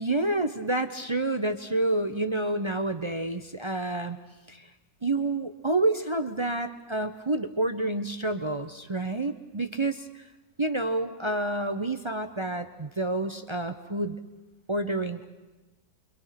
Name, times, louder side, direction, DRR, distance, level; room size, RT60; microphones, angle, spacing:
voice 1, 0.0-4.2 4.5-4.6 5.0-10.0 10.6-14.2 14.7-15.3, right 2 dB, 35° right, 8 dB, 0.4 m, -28 dB
29.5 x 24.0 x 5.9 m, 1.1 s
omnidirectional pair, 1.9 m